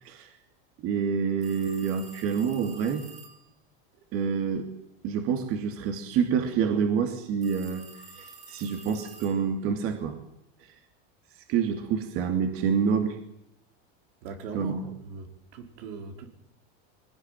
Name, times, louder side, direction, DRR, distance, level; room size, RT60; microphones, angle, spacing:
voice 1, 0.8-3.0 4.1-4.7 5.0-10.2 11.5-13.2 14.5-14.8, right 6 dB, 50° right, 5 dB, 2.9 m, -27 dB
sound 1, 1.4-3.5 7.4-9.6, right 4 dB, 25° right, 4.6 m, -49 dB
voice 2, 14.2-15.3 15.5-16.3, right 4 dB, 80° right, 5 dB, 4.5 m, -40 dB
22.0 x 19.0 x 9.4 m, 0.79 s
supercardioid pair, 150°, 29 cm